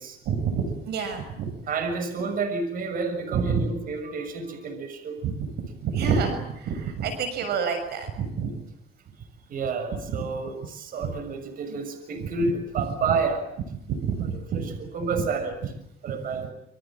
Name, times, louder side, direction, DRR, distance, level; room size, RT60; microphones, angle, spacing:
voice 1, 0.2-1.5 3.3-3.7 5.2-8.7 9.9-10.3 11.0-11.2 12.2-13.2 13.9-14.8 15.1-15.2 16.3-16.5, right 6 dB, 75° right, 8 dB, 6.5 m, -29 dB
voice 2, 1.7-5.2 9.5-13.5 14.9-15.5 16.0-16.5, right 4 dB, 55° right, 9 dB, 6.6 m, -29 dB
28.0 x 26.0 x 7.5 m, 0.78 s
cardioid pair, 110°, 17 cm